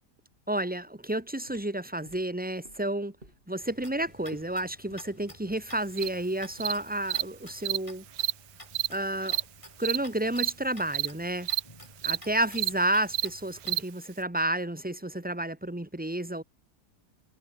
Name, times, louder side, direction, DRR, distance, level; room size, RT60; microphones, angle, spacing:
voice 1, 0.5-3.1 3.5-8.0 8.9-9.4 9.8-11.5 12.0-16.4, right 1 dB, 5° right, 1.3 m, -31 dB
sound 1, 1.2-7.5, right 1 dB, 30° right, 7.8 m, -55 dB
sound 2, 3.6-13.8, left 1 dB, 20° left, 6.9 m, -52 dB
Cricket, 6.0-6.1 6.6-6.7 7.1-7.2 7.7-7.8 8.1-8.3 8.7-8.9 9.3-9.4 9.8-10.0 10.3-10.5 10.9-11.1 11.4-11.6 12.0-12.2 12.5-12.7 13.1-13.3 13.7-13.8, right 14 dB, 90° right, 1.3 m, -28 dB
omnidirectional pair, 1.8 m